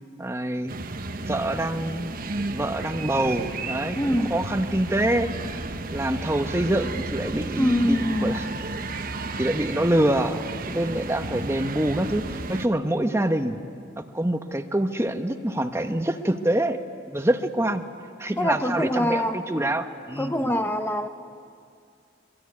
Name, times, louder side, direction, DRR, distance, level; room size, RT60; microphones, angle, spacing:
voice 1, 0.2-0.8 1.2-2.1 2.5-5.3 5.9-8.5 9.4-13.6 14.0-16.8 17.1-17.8 18.2-20.5, right 1 dB, 15° right, 7 dB, 1.0 m, -25 dB
sound 1, 0.7-12.7, right 2 dB, 50° right, 1.0 m, -33 dB
voice 2, 3.9-4.4 7.6-8.5 18.4-19.4 20.2-21.1, equal, 10° left, 6 dB, 0.8 m, -24 dB
24.0 x 23.0 x 9.7 m, 2.4 s
head